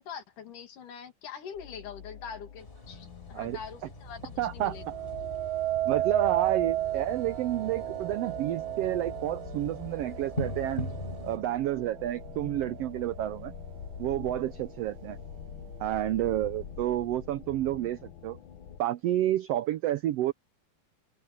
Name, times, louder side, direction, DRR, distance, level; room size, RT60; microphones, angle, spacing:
voice 1, 0.0-4.8, left 7 dB, 90° left, 3.9 m, -43 dB
sound 1, 1.4-18.8, left 8 dB, 65° left, 1.2 m, -46 dB
sound 2, 2.6-11.4, left 1 dB, 15° left, 3.7 m, -42 dB
voice 2, 4.4-4.8 5.9-10.9 11.2-13.5 14.0-15.2 15.8-18.4 18.8-20.3, right 13 dB, 85° right, 1.3 m, -30 dB
sound 3, 4.7-13.9 14.4-14.9, right 14 dB, 70° right, 1.6 m, -34 dB
open air
omnidirectional pair, 3.6 m